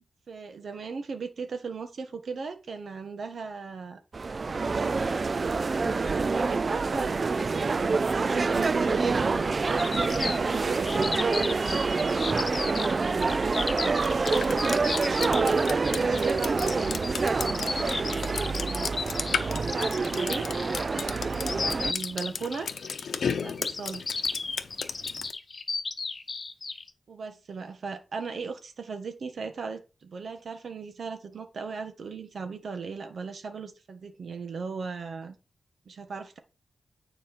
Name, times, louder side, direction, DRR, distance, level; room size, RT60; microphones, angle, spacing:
voice 1, 0.3-4.0 4.5-5.1 6.1-11.0 13.4-16.9 17.2-17.8 18.4-18.9 19.3-20.5 20.9-22.7 23.4-24.0 27.1-35.4 35.8-36.4, right 5 dB, 65° right, 7 dB, 1.5 m, -37 dB
sound 1, 4.1-21.9, right 4 dB, 40° right, 0.4 m, -27 dB
sound 2, 9.6-26.9, left 4 dB, 40° left, 1.0 m, -35 dB
Drip, 14.0-25.3, left 6 dB, 80° left, 0.8 m, -35 dB
9.6 x 4.9 x 4.5 m, 0.30 s
wide cardioid pair, 130°, 0 cm